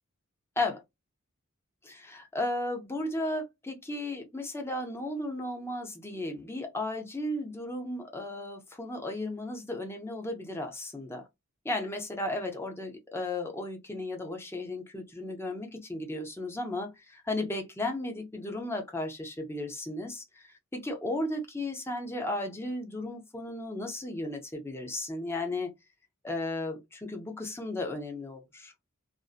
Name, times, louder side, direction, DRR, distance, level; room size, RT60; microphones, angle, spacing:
voice 1, 1.8-11.2 11.6-25.7 26.2-28.7, left 2 dB, 10° left, 0.6 m, -35 dB
2.6 x 2.0 x 2.3 m
head